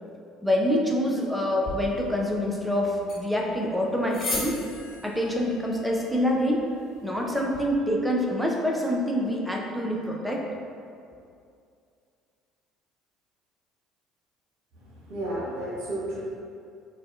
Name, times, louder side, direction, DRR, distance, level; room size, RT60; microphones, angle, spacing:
voice 1, 0.4-4.5 5.0-6.6 7.0-10.4, equal, 5° right, -1 dB, 0.5 m, -26 dB
sound 1, 1.6-7.6, left 1 dB, 50° left, 0.9 m, -39 dB
voice 2, 14.9-16.2, right 1 dB, 70° right, -7 dB, 0.9 m, -32 dB
3.9 x 2.3 x 2.4 m, 2.4 s
hypercardioid pair, 60°, 0 cm